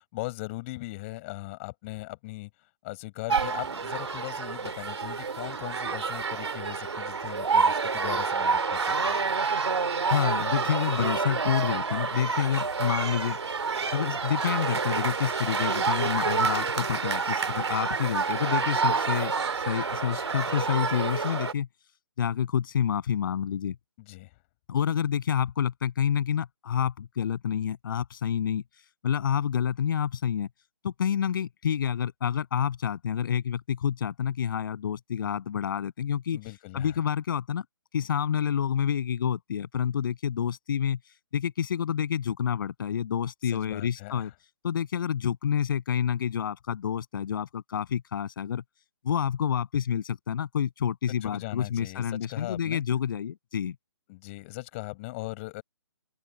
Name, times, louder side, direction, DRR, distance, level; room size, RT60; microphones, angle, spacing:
voice 1, 0.0-9.2 24.0-24.4 36.3-37.0 43.4-44.3 51.1-52.8 54.1-55.6, left 22 dB, 30° left, 7.0 m, -39 dB
sound 1, 3.3-21.5, right 5 dB, 75° right, 2.6 m, -28 dB
voice 2, 10.1-13.4 13.9-19.3 19.7-21.7 22.2-23.8 24.7-28.6 29.0-30.5 30.8-36.4 36.7-37.6 37.9-41.0 41.3-44.3 44.6-48.6 49.0-53.8, left 8 dB, 50° left, 7.7 m, -28 dB
open air
hypercardioid pair, 150°, 14 cm